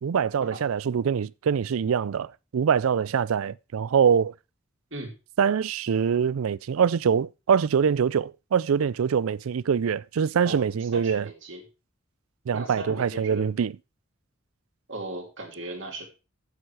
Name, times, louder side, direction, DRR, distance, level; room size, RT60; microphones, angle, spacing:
voice 1, 0.0-4.3 5.4-11.3 12.5-13.7, right 7 dB, 85° right, 0.4 m, -24 dB
voice 2, 10.4-11.6 12.5-13.5 14.9-16.0, right 2 dB, 60° right, 3.0 m, -37 dB
8.9 x 7.9 x 4.7 m
head